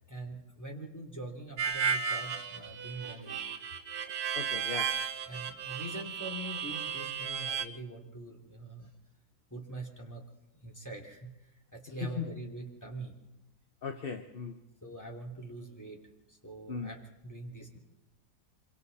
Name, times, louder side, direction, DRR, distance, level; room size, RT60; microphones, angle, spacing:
voice 1, 0.1-3.4 5.2-8.9 9.5-10.2 10.5-11.3 11.7-13.1 14.8-16.0 16.3-17.8, right 2 dB, 10° left, 0 dB, 3.2 m, -43 dB
Harmonica, 1.6-7.7, right 6 dB, 65° right, 1.7 m, -34 dB
voice 2, 4.3-5.0 12.0-12.3 13.8-14.6 16.7-16.9, left 6 dB, 45° left, 7 dB, 0.8 m, -38 dB
26.0 x 24.5 x 4.2 m, 0.94 s
omnidirectional pair, 1.8 m